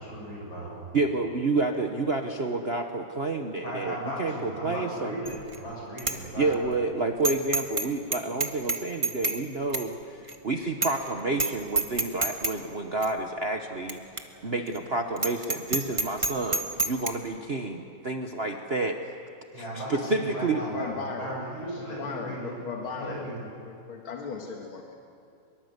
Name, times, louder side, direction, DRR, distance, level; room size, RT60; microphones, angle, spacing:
voice 1, 0.0-0.8 3.6-6.6 19.5-22.5 22.9-23.4, right 1 dB, 70° left, -4 dB, 8.5 m, -36 dB
voice 2, 0.9-5.1 6.4-10.2 10.4-14.0 14.4-19.0 19.6-20.6, right 3 dB, 40° right, 4 dB, 1.0 m, -29 dB
Bicycle bell, 5.3-5.6 6.0-6.2 6.5-6.6 7.2-7.9 8.1-9.4 9.7-9.9 10.3-10.4 10.8-11.1 11.3-11.5 11.8-12.5 13.0-13.1 13.9-14.0 14.2-14.3 14.7-14.8 15.2-17.1, right 2 dB, 20° right, 1.0 m, -27 dB
voice 3, 20.5-21.4 21.8-23.2 23.6-24.9, left 4 dB, 85° left, 1 dB, 2.5 m, -37 dB
23.0 x 23.0 x 8.1 m, 2.5 s
omnidirectional pair, 2.2 m